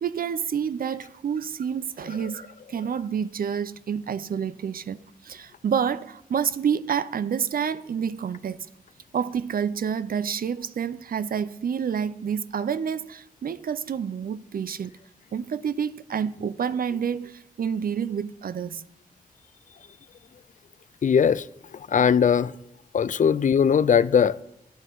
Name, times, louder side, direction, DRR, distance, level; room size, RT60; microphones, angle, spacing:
voice 1, 0.0-8.6 9.1-15.0 15.3-18.8, right 7 dB, 65° right, 0.4 m, -28 dB
voice 2, 21.0-21.5 21.7-22.5 22.9-24.4, left 7 dB, 55° left, 0.4 m, -20 dB
9.7 x 8.2 x 4.6 m
cardioid pair, 50°, 16 cm